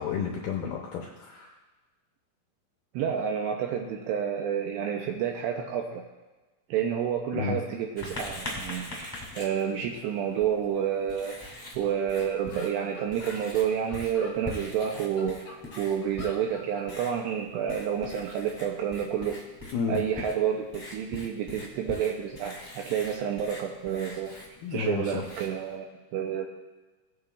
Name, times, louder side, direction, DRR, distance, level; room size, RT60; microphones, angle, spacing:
voice 1, 0.0-1.5 7.3-7.6 19.7-20.0 24.6-25.2, left 6 dB, 80° left, -1 dB, 2.2 m, -31 dB
voice 2, 2.9-6.0 6.7-19.4 19.9-24.3 24.7-25.9 26.1-26.5, right 8 dB, 80° right, 2 dB, 2.5 m, -29 dB
Writing, 8.0-25.8, left 2 dB, 15° left, 0.7 m, -43 dB
sound 1, 11.8-11.9 12.1-12.2 12.5-14.4 14.9-16.9, left 2 dB, 50° left, 2.2 m, -46 dB
18.0 x 8.8 x 2.4 m, 1.2 s
omnidirectional pair, 5.5 m